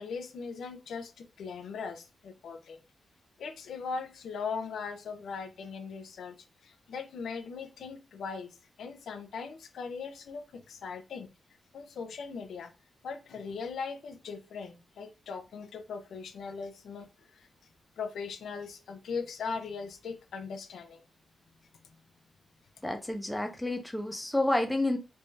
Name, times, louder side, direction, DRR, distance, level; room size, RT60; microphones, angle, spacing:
voice 1, 0.0-2.8 3.4-6.4 6.6-11.3 11.7-12.7 13.0-17.5 18.0-21.0, left 5 dB, 90° left, 7 dB, 0.6 m, -39 dB
voice 2, 22.8-25.0, left 1 dB, 5° left, 4 dB, 0.5 m, -29 dB
3.4 x 3.3 x 2.6 m, 0.32 s
wide cardioid pair, 170°, 0 cm